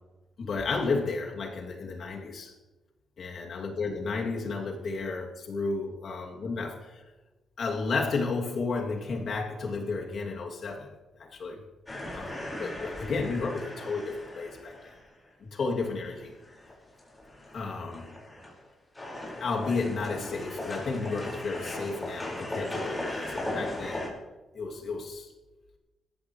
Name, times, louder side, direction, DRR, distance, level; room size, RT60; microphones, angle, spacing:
voice 1, 0.4-2.5 3.2-7.0 7.6-10.9 11.2-11.6 12.1-14.9 15.4-16.3 17.5-18.1 19.4-24.1 24.5-25.3, left 4 dB, 60° left, 0 dB, 2.7 m, -32 dB
sound 1, 11.9-15.2 15.7-15.8 16.1-18.7 18.9-24.1, left 1 dB, 15° left, 5.2 m, -38 dB
19.0 x 14.0 x 3.2 m, 1.1 s
cardioid pair, 105°, 0 cm